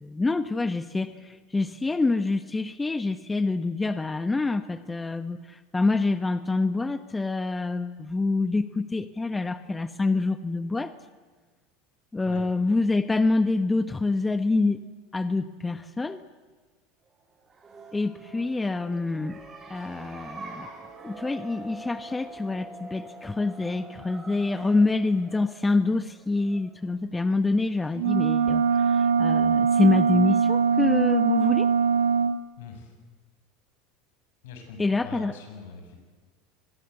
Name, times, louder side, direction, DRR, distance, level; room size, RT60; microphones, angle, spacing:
voice 1, 0.0-10.9 12.1-14.8 15.1-16.2 17.9-19.4 19.7-20.7 21.0-31.7 34.8-35.3, left 3 dB, 15° left, 11 dB, 1.1 m, -26 dB
sound 1, 17.4-26.9, right 2 dB, 25° right, 7.4 m, -45 dB
sound 2, 27.9-32.4, right 6 dB, 85° right, 1.2 m, -22 dB
voice 2, 32.6-33.0 34.4-36.0, left 5 dB, 75° left, 5 dB, 6.9 m, -43 dB
25.5 x 21.0 x 8.2 m, 1.4 s
hypercardioid pair, 90°, 0 cm